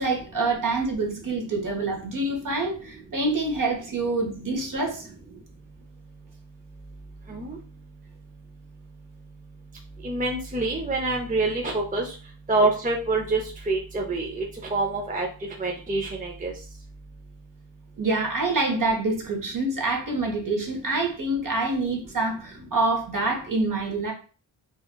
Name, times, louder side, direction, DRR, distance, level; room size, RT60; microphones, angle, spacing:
voice 1, 0.0-5.1 18.0-24.1, right 2 dB, 40° right, 1 dB, 1.1 m, -26 dB
voice 2, 10.0-12.1 12.5-13.4 13.7-14.4 14.7-15.3 15.6-16.5, right 2 dB, 15° right, 0 dB, 0.6 m, -26 dB
4.4 x 2.3 x 2.2 m, 0.37 s
cardioid pair, 70°, 48 cm